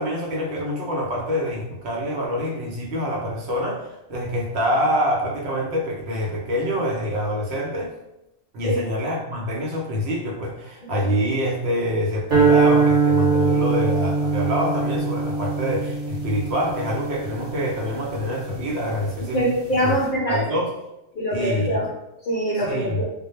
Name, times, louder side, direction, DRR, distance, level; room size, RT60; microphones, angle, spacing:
voice 1, 0.0-7.9 8.5-19.4 19.8-20.0 20.3-20.7 21.3-21.8 22.6-23.0, equal, 70° right, -1 dB, 0.8 m, -26 dB
sound 1, 12.3-18.6, right 4 dB, 40° right, 0.9 m, -22 dB
voice 2, 19.3-20.4 21.1-21.9 22.2-23.0, right 1 dB, 60° left, -4 dB, 0.6 m, -23 dB
2.1 x 2.0 x 3.0 m, 0.90 s
omnidirectional pair, 1.2 m